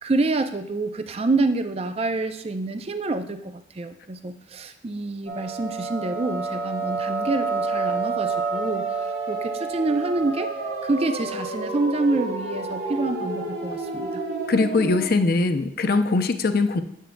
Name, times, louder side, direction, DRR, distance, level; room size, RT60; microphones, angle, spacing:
voice 1, 0.0-10.5 10.8-14.2, right 2 dB, 35° right, 9 dB, 0.4 m, -27 dB
sound 1, 5.3-15.1, right 3 dB, 70° right, 2.2 m, -29 dB
voice 2, 14.5-16.8, left 3 dB, 55° left, 8 dB, 0.5 m, -21 dB
9.1 x 7.4 x 2.2 m, 0.72 s
head